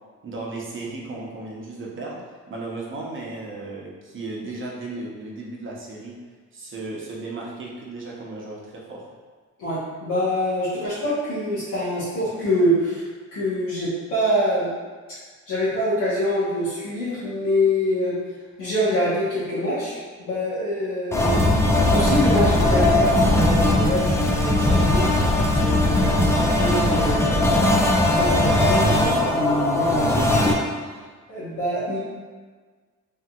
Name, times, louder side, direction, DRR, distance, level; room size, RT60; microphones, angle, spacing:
voice 1, 0.2-2.2 2.5-6.1 6.5-9.1, right 2 dB, 40° right, -3 dB, 0.8 m, -35 dB
voice 2, 9.6-14.7 15.5-18.2 18.6-19.9 20.2-21.5 21.9-27.5 28.1-30.5 31.3-32.0, equal, 80° left, -11 dB, 1.1 m, -25 dB
sound 1, 21.1-30.5, left 1 dB, 10° left, 0.4 m, -19 dB
3.4 x 2.7 x 2.3 m, 1.4 s
cardioid pair, 90°, 30 cm